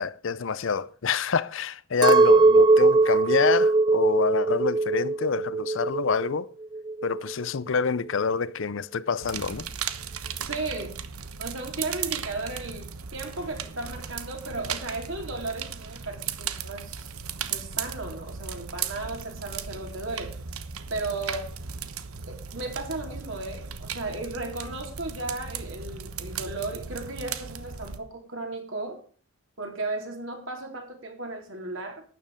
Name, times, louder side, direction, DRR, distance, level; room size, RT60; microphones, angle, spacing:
voice 1, 0.0-6.5 7.0-9.7, left 5 dB, 60° left, 0.5 m, -27 dB
Chink clink, 2.0-6.4 6.6-7.4, right 3 dB, 20° right, 0.5 m, -20 dB
sound 1, 9.2-28.0, right 7 dB, 85° right, 1.1 m, -36 dB
voice 2, 10.3-11.0 11.4-17.1 17.5-20.3 20.9-21.5 22.3-29.0 29.6-32.0, right 2 dB, 60° right, 3.8 m, -35 dB
12.5 x 9.8 x 5.1 m
head